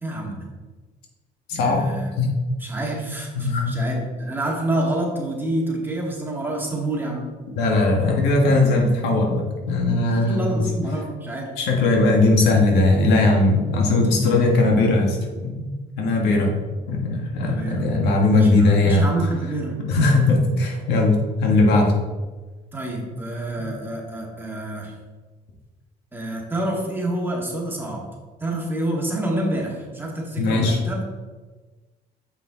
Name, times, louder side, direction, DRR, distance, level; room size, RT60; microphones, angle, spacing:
voice 1, 0.0-0.5 1.6-2.1 2.6-7.3 10.0-11.5 17.4-17.9 18.3-19.8 22.7-24.9 26.1-28.1 28.4-31.0, right 1 dB, 10° right, -2 dB, 2.0 m, -28 dB
voice 2, 1.5-1.8 2.2-2.3 3.3-3.8 7.6-10.6 11.6-15.2 15.4-15.7 16.0-16.5 16.9-19.1 19.9-21.9 30.4-30.8, left 2 dB, 90° left, 0 dB, 1.6 m, -19 dB
7.2 x 5.7 x 3.8 m, 1.3 s
cardioid pair, 110°, 17 cm